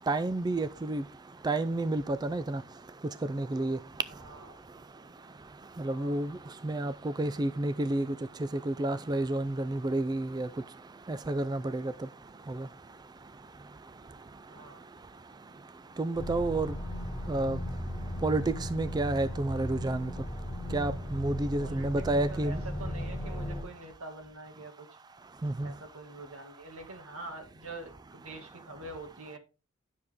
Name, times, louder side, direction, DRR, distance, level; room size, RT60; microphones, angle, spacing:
voice 1, 0.1-1.0 1.4-2.6 3.3-3.8 5.8-6.3 6.6-6.9 7.2-8.1 8.7-10.5 11.1-11.9 12.5-12.6 16.0-16.7 17.3-17.6 18.2-18.4 18.7-20.1 20.7-22.6 25.4-25.7, right 2 dB, 20° right, 0.3 m, -30 dB
voice 2, 4.2-4.6 5.8-6.6 14.5-14.9 21.6-24.9 25.6-29.4, right 2 dB, 85° right, 2.1 m, -46 dB
sound 1, 16.1-23.6, equal, 10° left, 3.7 m, -36 dB
9.9 x 6.4 x 3.5 m
head